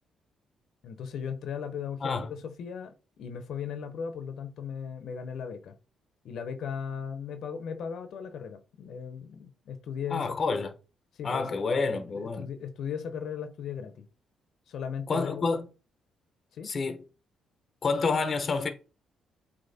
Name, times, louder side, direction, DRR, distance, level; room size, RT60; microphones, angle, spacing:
voice 1, 0.8-5.7 6.2-10.4 11.2-11.4 12.2-14.1 14.7-15.5 16.5-16.7, left 7 dB, 70° left, 1.0 m, -37 dB
voice 2, 10.1-10.7 11.2-12.5 15.1-15.6 16.6-17.0 17.8-18.7, left 4 dB, 40° left, 1.0 m, -28 dB
8.0 x 3.0 x 4.2 m
cardioid pair, 90°, 0 cm